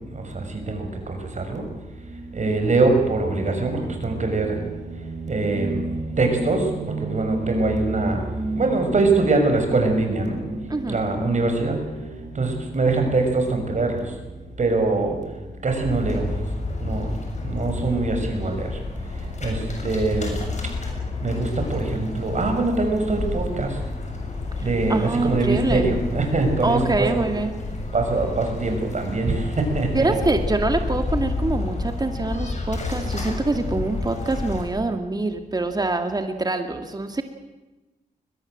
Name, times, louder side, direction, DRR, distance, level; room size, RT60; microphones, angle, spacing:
voice 1, 0.1-15.2 15.6-16.3 16.8-18.8 19.4-20.3 21.2-23.8 24.6-27.2 27.9-30.1, right 3 dB, 50° right, 4 dB, 6.2 m, -23 dB
voice 2, 10.7-11.0 24.9-25.9 26.6-27.6 29.9-37.2, right 2 dB, 25° right, 6 dB, 2.2 m, -25 dB
sound 1, 15.8-34.6, left 3 dB, 45° left, 7.5 m, -30 dB
22.5 x 20.5 x 7.7 m, 1.1 s
cardioid pair, 75°, 16 cm